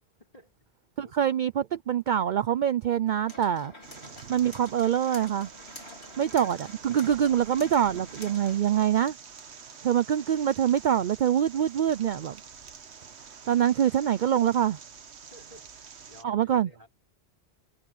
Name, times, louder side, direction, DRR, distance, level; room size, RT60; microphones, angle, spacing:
voice 1, 0.2-0.7 1.0-1.2 6.0-6.7 9.8-10.2 15.3-16.9, equal, 35° left, 5.9 m, -54 dB
voice 2, 1.0-3.7 4.3-5.5 6.2-9.1 9.8-12.4 13.5-14.8 16.2-16.7, right 9 dB, 55° right, 0.6 m, -25 dB
sound 1, 3.3-8.6, left 2 dB, 75° left, 4.8 m, -48 dB
sound 2, 3.8-16.2, right 6 dB, 85° right, 1.5 m, -47 dB
omnidirectional pair, 1.1 m